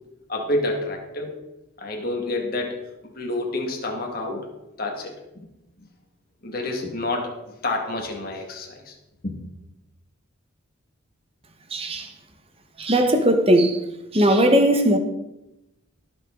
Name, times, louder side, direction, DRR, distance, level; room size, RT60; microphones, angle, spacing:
voice 1, 0.3-1.4 1.8-4.5 4.8-5.5 6.4-7.3 7.6-8.9 9.2-9.3, left 2 dB, 45° left, 2.0 m, -28 dB
voice 2, 11.7-12.1 12.8-13.8 14.1-15.0, right 1 dB, 25° right, 1.1 m, -18 dB
18.5 x 6.5 x 3.8 m
head